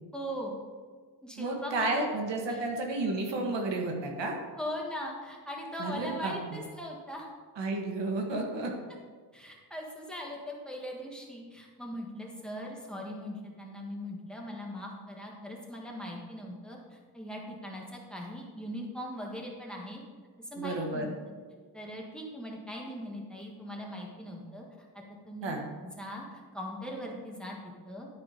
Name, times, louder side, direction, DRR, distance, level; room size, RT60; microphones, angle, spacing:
voice 1, 0.1-0.6 1.2-2.1 2.5-2.6 4.6-7.3 9.3-20.0 20.4-21.1 21.7-24.9 25.2-28.1, equal, ahead, -1 dB, 1.5 m, -40 dB
voice 2, 1.4-4.3 5.8-6.6 7.6-8.7 20.6-21.1 25.4-25.6, right 2 dB, 85° right, 1 dB, 1.6 m, -32 dB
11.5 x 4.6 x 5.1 m, 1.6 s
wide cardioid pair, 130°, 42 cm